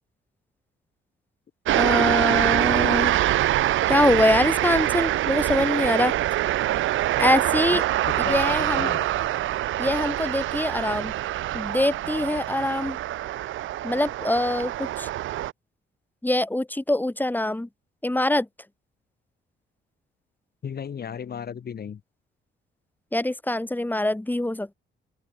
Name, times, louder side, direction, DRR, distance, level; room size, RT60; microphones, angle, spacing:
sound 1, 1.6-15.5, right 14 dB, 80° right, 1.5 m, -24 dB
voice 1, 1.7-3.2 3.9-6.1 7.2-7.8 8.2-8.9 9.8-11.1 11.5-13.0 13.8-15.1 16.2-17.7 18.0-18.5 23.1-24.7, left 1 dB, 10° left, 7.1 m, -24 dB
voice 2, 8.2-9.1 20.6-22.0, left 7 dB, 50° left, 7.1 m, -34 dB
open air
cardioid pair, 90°, 20 cm